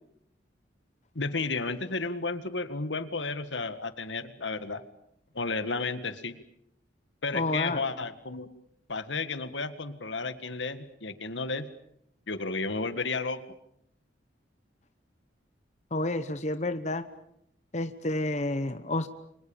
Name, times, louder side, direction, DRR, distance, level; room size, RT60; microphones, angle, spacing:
voice 1, 1.2-4.8 5.3-6.4 7.2-8.5 8.9-11.7 12.3-13.4, left 3 dB, 80° left, 12 dB, 1.8 m, -32 dB
voice 2, 7.3-7.8 15.9-17.0 17.7-19.1, left 2 dB, 40° left, 10 dB, 1.0 m, -30 dB
30.0 x 24.5 x 7.2 m, 0.75 s
head